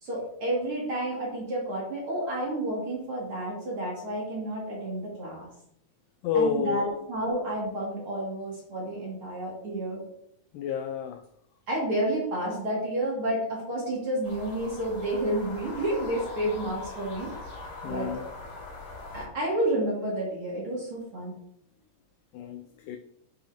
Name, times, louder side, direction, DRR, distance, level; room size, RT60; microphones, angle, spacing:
voice 1, 0.0-5.5 6.3-10.0 11.7-17.3 17.8-18.1 19.1-21.4, right 1 dB, 40° right, 2.8 m, -30 dB
voice 2, 6.2-7.1 10.5-11.2 17.8-18.2 22.3-23.0, left 6 dB, 85° left, 1.9 m, -29 dB
sound 1, 14.2-19.3, left 2 dB, 55° left, 4.8 m, -41 dB
9.9 x 5.7 x 2.8 m
omnidirectional pair, 4.4 m